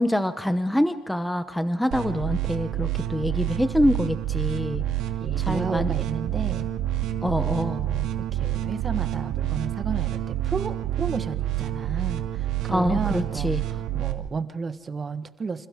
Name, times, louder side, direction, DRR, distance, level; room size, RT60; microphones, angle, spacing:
voice 1, 0.0-4.8 5.4-5.9 7.2-7.8 12.7-13.6, equal, ahead, 10 dB, 0.8 m, -25 dB
sound 1, 1.9-14.1, right 13 dB, 85° right, 2.2 m, -28 dB
voice 2, 5.2-6.7 7.3-15.7, right 5 dB, 25° right, 10 dB, 1.2 m, -33 dB
29.0 x 28.5 x 3.7 m, 1.0 s
cardioid pair, 150°, 0 cm